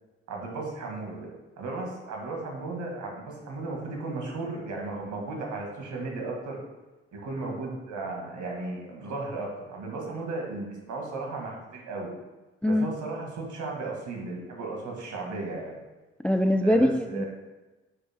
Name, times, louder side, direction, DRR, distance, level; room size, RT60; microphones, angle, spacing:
voice 1, 0.3-1.3 1.6-6.6 7.1-12.1 12.7-15.8 16.6-17.3, right 3 dB, 65° right, 0 dB, 2.0 m, -35 dB
voice 2, 16.2-17.3, left 1 dB, 5° left, 7 dB, 0.4 m, -23 dB
10.5 x 5.9 x 2.3 m, 1.1 s
hypercardioid pair, 45°, 32 cm